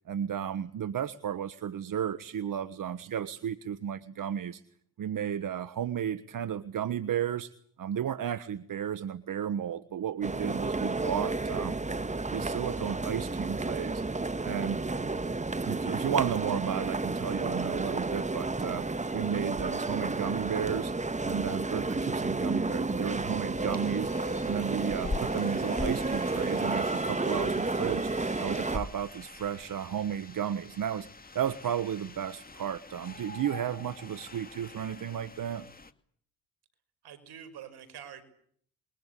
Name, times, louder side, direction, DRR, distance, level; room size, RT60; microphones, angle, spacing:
voice 1, 0.0-4.6 5.0-7.5 7.8-11.8 12.3-14.0 14.4-14.8 15.6-18.9 19.1-20.9 21.2-31.1 31.3-35.7, right 9 dB, 50° right, 15 dB, 1.4 m, -33 dB
sound 1, 10.2-28.8, right 3 dB, 15° right, 1.6 m, -31 dB
sound 2, 23.6-35.9, left 3 dB, 20° left, 2.3 m, -44 dB
voice 2, 37.0-38.2, right 9 dB, 70° right, 11 dB, 5.8 m, -46 dB
28.0 x 22.5 x 8.4 m, 0.62 s
hypercardioid pair, 55°, 41 cm